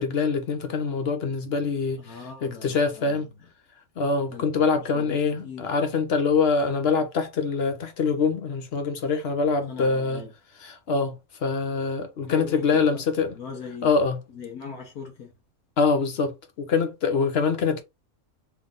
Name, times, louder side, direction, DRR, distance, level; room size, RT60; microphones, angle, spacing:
voice 1, 0.0-3.3 4.0-10.2 10.6-13.3 13.8-14.2 15.8-17.8, left 4 dB, 50° left, 0.9 m, -24 dB
voice 2, 2.0-3.5 4.3-5.7 9.7-10.3 12.3-13.0 13.3-13.9 14.3-15.3, left 5 dB, 90° left, 1.5 m, -40 dB
3.4 x 3.3 x 3.7 m
omnidirectional pair, 1.5 m